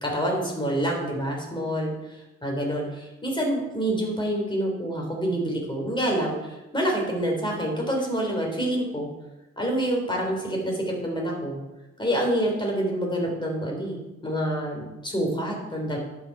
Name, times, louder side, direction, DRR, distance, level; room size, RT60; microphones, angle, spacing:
voice 1, 0.0-9.1 9.6-11.6 12.0-16.0, right 1 dB, 15° left, 0 dB, 3.6 m, -27 dB
11.0 x 6.3 x 4.7 m, 0.99 s
cardioid pair, 90°, 30 cm